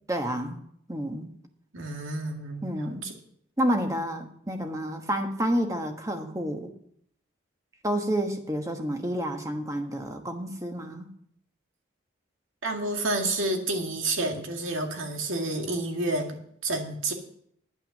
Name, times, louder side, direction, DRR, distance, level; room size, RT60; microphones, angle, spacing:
voice 1, 0.1-0.6 0.9-1.3 2.6-3.0 3.6-6.7 7.8-11.1, equal, 15° right, 5 dB, 1.2 m, -29 dB
voice 2, 1.7-3.1 12.6-16.4 16.6-17.1, right 2 dB, 85° right, 3 dB, 2.1 m, -29 dB
10.5 x 9.1 x 6.5 m, 0.69 s
head